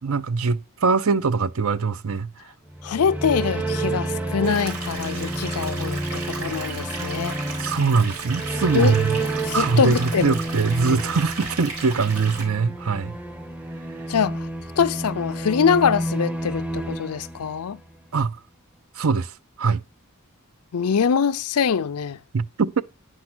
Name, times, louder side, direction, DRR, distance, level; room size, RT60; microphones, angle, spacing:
voice 1, 0.0-2.3 7.6-9.2 9.5-13.1 18.1-18.4 19.0-19.3 19.6-19.8 22.3-22.8, right 4 dB, 70° right, 0.6 m, -22 dB
sound 1, 2.7-17.9, right 2 dB, 5° right, 0.6 m, -30 dB
voice 2, 2.8-7.4 8.5-9.0 9.5-10.4 10.9-11.0 14.1-14.5 14.8-17.8 20.7-22.2, left 6 dB, 85° left, 0.5 m, -24 dB
sound 2, 4.4-12.4, right 4 dB, 90° right, 3.9 m, -35 dB
9.7 x 4.7 x 6.1 m
head